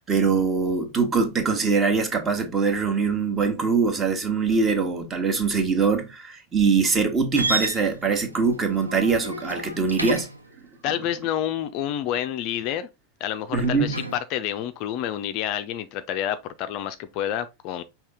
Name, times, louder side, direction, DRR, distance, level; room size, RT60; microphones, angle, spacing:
voice 1, 0.0-10.3 13.5-13.9, right 5 dB, 20° right, 1.1 m, -23 dB
sound 1, 7.3-10.5 13.5-14.2, right 2 dB, 85° right, 0.6 m, -31 dB
voice 2, 10.8-12.9 13.2-17.8, left 11 dB, 40° left, 0.4 m, -28 dB
5.5 x 2.8 x 3.4 m
figure-of-eight pair, 90°, 0 cm